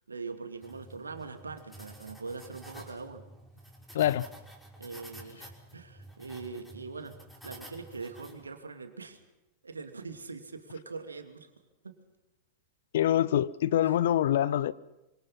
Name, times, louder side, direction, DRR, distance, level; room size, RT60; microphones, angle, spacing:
voice 1, 0.1-3.2 4.8-7.2 7.4-9.2 9.6-11.5 11.8-12.0 13.8-14.0, right 4 dB, 75° right, 2.8 m, -42 dB
sound 1, 0.6-8.5, right 1 dB, 5° left, 5.7 m, -50 dB
voice 2, 3.9-4.3 12.9-14.7, left 11 dB, 60° left, 0.8 m, -25 dB
26.0 x 25.5 x 5.8 m
figure-of-eight pair, 90°, 0 cm